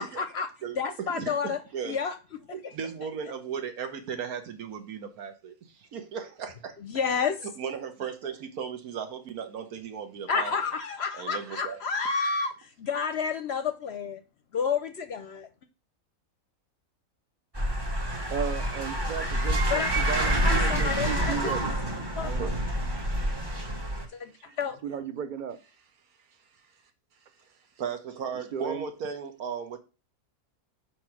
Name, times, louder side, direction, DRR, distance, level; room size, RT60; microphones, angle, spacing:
voice 1, 0.0-0.5 0.7-1.6 1.8-2.2 2.6-2.7 6.8-7.4 10.3-14.2 14.5-15.5 19.7-19.9 20.4-21.6 22.2-22.3 24.1-24.3 24.6-24.8, left 5 dB, 60° left, 0.7 m, -30 dB
voice 2, 0.6-2.0 2.5-6.7 7.4-10.5 11.1-11.8 22.4-22.6 24.4-24.6 27.8-29.8, right 7 dB, 80° right, 1.5 m, -36 dB
sound 1, 17.5-24.0, right 1 dB, 20° right, 0.9 m, -27 dB
voice 3, 18.3-21.7 22.2-22.5 24.8-25.6 28.5-28.8, right 7 dB, 50° right, 0.6 m, -34 dB
4.8 x 4.3 x 5.8 m
omnidirectional pair, 1.5 m